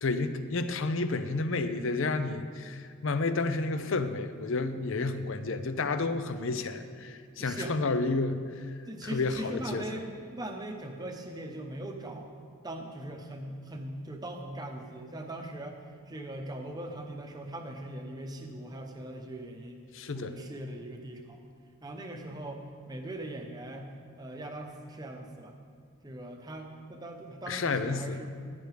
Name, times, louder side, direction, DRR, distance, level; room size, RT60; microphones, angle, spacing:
voice 1, 0.0-9.8 19.9-20.3 27.5-28.2, left 3 dB, 60° left, 11 dB, 0.6 m, -31 dB
voice 2, 7.4-7.8 8.9-12.3 12.6-15.8 16.1-19.8 20.1-21.4 21.8-23.9 24.2-25.5 26.0-28.3, right 1 dB, 20° right, 3 dB, 0.8 m, -40 dB
15.0 x 9.3 x 3.4 m, 2.2 s
head